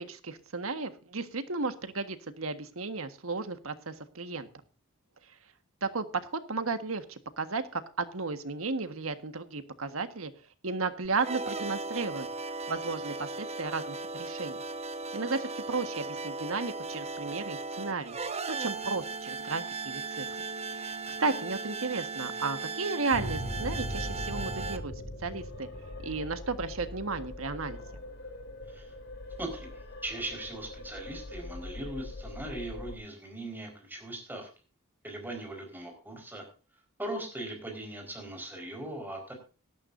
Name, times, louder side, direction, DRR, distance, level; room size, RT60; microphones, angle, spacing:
voice 1, 0.0-4.5 5.8-10.3 10.6-12.3 12.7-14.6 15.1-18.2 18.5-20.3 20.7-24.9 25.2-25.7 26.0-27.8, right 4 dB, 85° right, 10 dB, 1.5 m, -34 dB
sound 1, 11.0-24.8, right 4 dB, 30° right, 1.1 m, -37 dB
sound 2, 23.1-32.9, left 1 dB, 55° left, 2.8 m, -40 dB
voice 2, 29.4-34.5 35.0-36.4 37.0-39.3, right 1 dB, 10° right, 2 dB, 4.5 m, -39 dB
18.0 x 12.5 x 2.6 m, 0.36 s
head